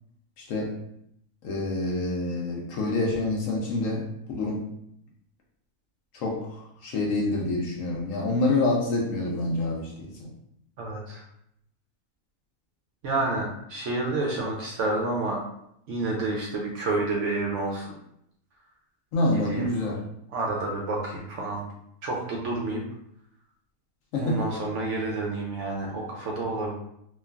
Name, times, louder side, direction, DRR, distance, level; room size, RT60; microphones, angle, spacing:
voice 1, 0.4-0.7 1.4-4.6 6.1-10.3 19.1-20.0 24.1-24.4, left 2 dB, 70° left, -1 dB, 0.9 m, -27 dB
voice 2, 10.8-11.2 13.0-15.4 15.9-18.0 19.3-19.7 20.3-21.6 22.0-22.8 24.2-26.7, right 2 dB, 65° right, -2 dB, 0.8 m, -29 dB
3.0 x 2.3 x 2.3 m, 0.74 s
omnidirectional pair, 1.6 m